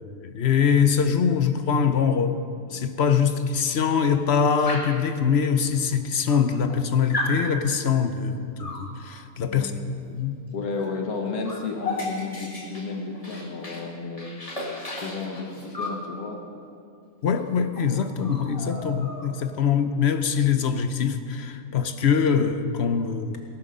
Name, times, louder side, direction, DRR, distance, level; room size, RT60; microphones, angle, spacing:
voice 1, 0.0-2.4 2.7-9.7 10.1-10.4 17.2-23.4, left 6 dB, 55° left, 0.9 m, -23 dB
Dog, 4.7-5.1 5.9-6.0 6.3-6.8 7.1-7.4 8.6-8.9 10.7-10.9 11.2-13.9 14.2-16.0 17.3-17.4 17.7-17.9 18.2-19.5, left 2 dB, 25° left, 1.9 m, -34 dB
voice 2, 9.5-10.0 10.5-14.3 14.9-16.4, left 4 dB, 80° left, 1.9 m, -32 dB
18.5 x 11.5 x 5.3 m
omnidirectional pair, 1.5 m